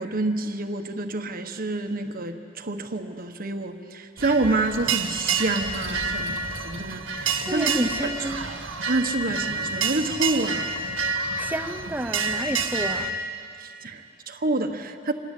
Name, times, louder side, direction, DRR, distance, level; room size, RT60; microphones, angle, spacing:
voice 1, 0.0-7.7 8.8-10.7 13.6-15.1, right 2 dB, 50° right, 7 dB, 1.4 m, -28 dB
sound 1, 4.2-13.1, right 4 dB, 85° right, 2.1 m, -28 dB
voice 2, 7.5-8.5 11.4-13.2, right 1 dB, 10° right, 7 dB, 0.9 m, -30 dB
26.5 x 21.5 x 8.5 m, 2.6 s
head